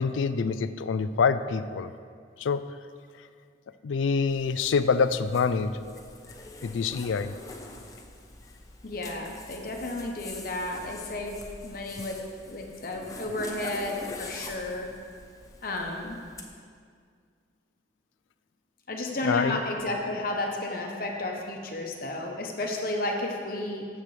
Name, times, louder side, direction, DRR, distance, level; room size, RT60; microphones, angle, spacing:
voice 1, 0.0-1.9 2.4-2.7 3.8-5.8 6.6-7.3 19.2-19.6, left 5 dB, 85° left, 12 dB, 0.4 m, -26 dB
Zipper (clothing), 4.3-16.4, left 2 dB, 20° left, 0.7 m, -45 dB
voice 2, 8.8-14.9 15.6-16.2 18.9-23.9, left 2 dB, 50° left, 1 dB, 0.9 m, -32 dB
13.5 x 7.5 x 3.2 m, 2.1 s
head